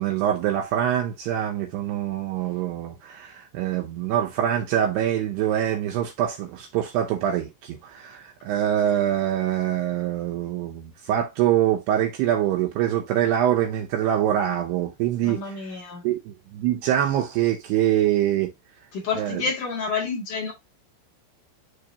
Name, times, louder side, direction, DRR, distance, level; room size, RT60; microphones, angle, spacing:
voice 1, 0.0-15.4 16.0-18.5 19.2-19.4, right 11 dB, 75° right, 2.5 m, -24 dB
voice 2, 15.2-16.0 18.9-20.5, left 5 dB, 50° left, 3.0 m, -29 dB
11.0 x 3.7 x 2.7 m
omnidirectional pair, 5.4 m